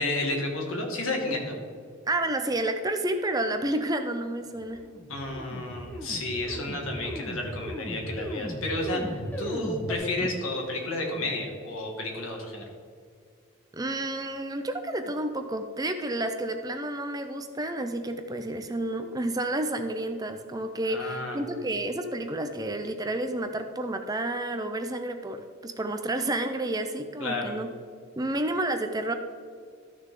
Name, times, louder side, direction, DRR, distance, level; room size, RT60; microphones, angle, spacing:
voice 1, 0.0-1.6 5.1-12.7 20.9-21.4 27.2-27.6, left 2 dB, 80° left, 1 dB, 2.1 m, -31 dB
voice 2, 2.1-4.8 10.2-10.3 13.7-27.7 28.2-29.1, right 1 dB, 20° right, 7 dB, 0.5 m, -30 dB
sound 1, 4.6-9.9, equal, 10° left, 1.1 m, -36 dB
13.5 x 6.5 x 3.8 m, 2.2 s
head